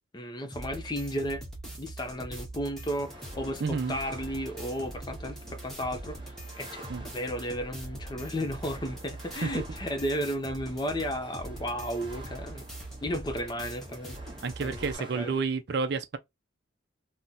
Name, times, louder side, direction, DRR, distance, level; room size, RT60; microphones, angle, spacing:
voice 1, 0.1-1.5 1.8-12.7 13.0-14.2 14.6-15.3, equal, 20° left, 0.5 m, -34 dB
sound 1, 0.5-14.9, right 1 dB, ahead, 0.9 m, -42 dB
sound 2, 2.8-15.4, right 1 dB, 25° right, 0.7 m, -50 dB
voice 2, 3.6-4.0 6.9-7.1 9.4-9.6 14.4-16.2, right 4 dB, 55° right, 0.4 m, -30 dB
2.8 x 2.1 x 3.7 m
head